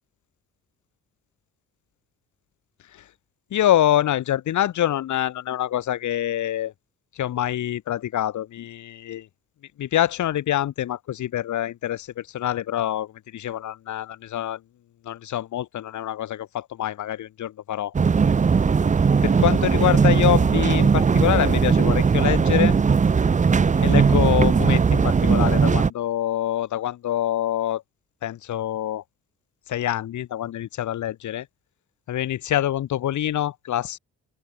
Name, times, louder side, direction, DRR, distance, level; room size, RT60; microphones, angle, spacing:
voice 1, 3.5-6.7 7.2-9.3 9.8-14.6 15.0-17.9 19.2-22.8 23.8-27.8 28.2-29.0 29.7-31.5 32.1-34.0, left 12 dB, 75° left, 6.2 m, -25 dB
sound 1, 17.9-25.9, right 5 dB, 25° right, 0.8 m, -18 dB
open air
cardioid pair, 90°, 30 cm